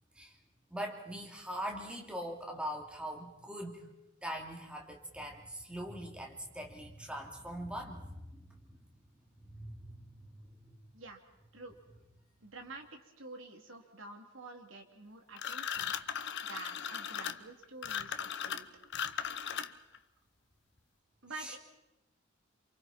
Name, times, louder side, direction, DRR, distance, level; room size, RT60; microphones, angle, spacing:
voice 1, 0.7-3.8 4.2-8.8 9.4-10.8 21.4-21.5, equal, 5° right, 0 dB, 3.0 m, -42 dB
voice 2, 12.4-15.9 16.4-18.7 21.2-21.6, right 3 dB, 70° right, 3 dB, 3.1 m, -48 dB
sound 1, 15.4-20.0, left 8 dB, 60° left, 1.0 m, -37 dB
28.5 x 28.5 x 4.4 m, 0.93 s
head